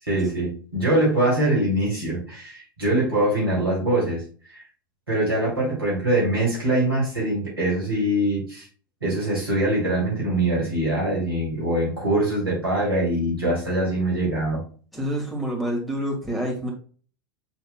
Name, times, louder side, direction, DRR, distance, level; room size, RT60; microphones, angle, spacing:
voice 1, 0.0-4.6 5.1-8.7 9.0-14.6, right 1 dB, 85° right, -7 dB, 2.6 m, -23 dB
voice 2, 14.9-16.7, equal, ahead, -2 dB, 1.9 m, -27 dB
6.8 x 3.5 x 2.2 m, 0.40 s
figure-of-eight pair, 85°, 12 cm